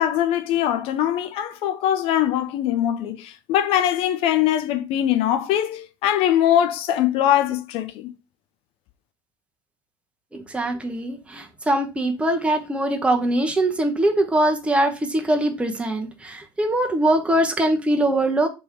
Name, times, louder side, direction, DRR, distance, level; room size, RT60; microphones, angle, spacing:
voice 1, 0.0-8.1, left 11 dB, 55° left, 0.7 m, -22 dB
voice 2, 10.3-18.5, right 1 dB, 10° right, 0.9 m, -22 dB
3.5 x 3.4 x 4.5 m
figure-of-eight pair, 70°, 12 cm